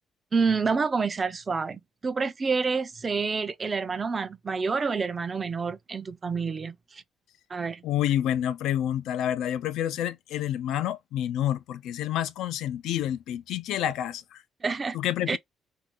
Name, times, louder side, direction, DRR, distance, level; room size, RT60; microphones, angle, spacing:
voice 1, 0.3-7.0 7.5-7.8 14.6-15.0 15.3-15.4, right 4 dB, 35° right, 0.5 m, -28 dB
voice 2, 7.8-14.4 14.9-15.4, left 11 dB, 85° left, 0.4 m, -28 dB
2.6 x 2.4 x 3.7 m
cardioid pair, 90°, 0 cm